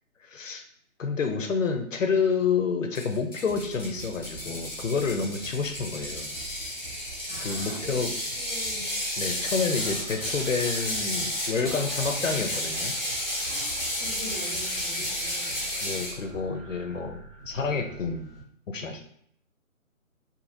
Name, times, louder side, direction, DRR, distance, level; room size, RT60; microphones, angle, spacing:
voice 1, 0.2-0.6 1.0-6.3 7.4-8.1 9.2-13.0 15.8-18.3 18.7-19.0, left 5 dB, 65° left, 5 dB, 0.5 m, -29 dB
Ratchet pawl, 2.9-16.2, left 1 dB, 15° left, 0.7 m, -32 dB
sound 1, 3.4-18.4, right 5 dB, 10° right, 0.9 m, -46 dB
voice 2, 7.3-8.1 8.4-8.9 11.6-12.4 13.4-15.6, left 1 dB, 40° right, -3 dB, 0.9 m, -43 dB
sound 2, 10.0-10.7, right 2 dB, 70° right, 1.0 m, -44 dB
2.7 x 2.5 x 2.6 m, 0.66 s
hypercardioid pair, 170°, 42 cm